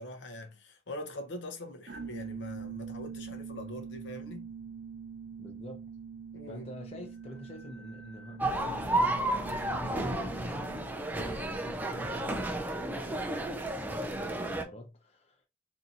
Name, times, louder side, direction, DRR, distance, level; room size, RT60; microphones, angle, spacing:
voice 1, 0.0-4.5 6.3-6.7, left 1 dB, 80° left, 0.7 m, -43 dB
sound 1, 1.9-11.1, right 6 dB, 75° right, 0.5 m, -44 dB
voice 2, 5.4-5.9 6.5-15.5, left 1 dB, 35° left, 0.7 m, -47 dB
sound 2, 8.4-14.6, right 1 dB, 10° right, 0.4 m, -32 dB
2.7 x 2.6 x 2.5 m
head